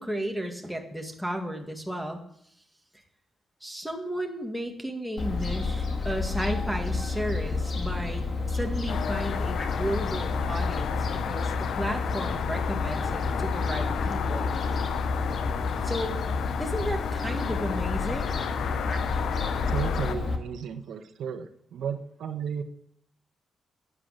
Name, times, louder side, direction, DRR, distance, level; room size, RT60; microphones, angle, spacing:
voice 1, 0.0-2.2 3.6-8.2 8.5-14.6 15.8-16.2 16.6-18.3, equal, ahead, 2 dB, 1.9 m, -33 dB
Fowl, 5.2-20.4, left 3 dB, 45° left, 2.1 m, -30 dB
sound 1, 8.9-20.2, left 8 dB, 80° left, 0.8 m, -33 dB
voice 2, 19.7-22.6, right 7 dB, 80° right, 8 dB, 1.2 m, -34 dB
12.0 x 8.7 x 9.0 m, 0.72 s
cardioid pair, 130°, 0 cm